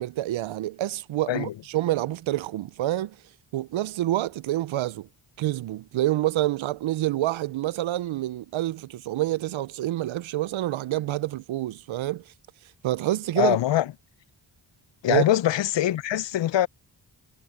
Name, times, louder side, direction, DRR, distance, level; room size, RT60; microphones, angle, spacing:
voice 1, 0.0-3.2 3.5-5.1 5.4-12.2 12.8-13.6 15.1-15.2, right 14 dB, 80° right, 0.5 m, -27 dB
voice 2, 13.4-13.9 15.0-16.7, left 12 dB, 65° left, 0.6 m, -23 dB
cardioid pair, 55°, 47 cm